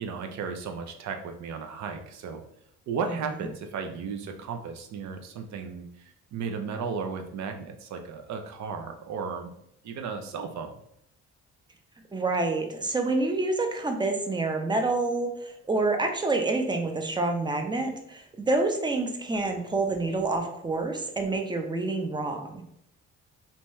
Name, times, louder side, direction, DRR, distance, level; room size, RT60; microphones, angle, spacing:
voice 1, 0.0-2.4 2.9-9.5 9.8-10.7, right 5 dB, 65° right, 5 dB, 0.5 m, -35 dB
voice 2, 12.1-22.6, right 3 dB, 15° right, 4 dB, 0.5 m, -28 dB
2.7 x 2.3 x 3.1 m, 0.74 s
cardioid pair, 90°, 30 cm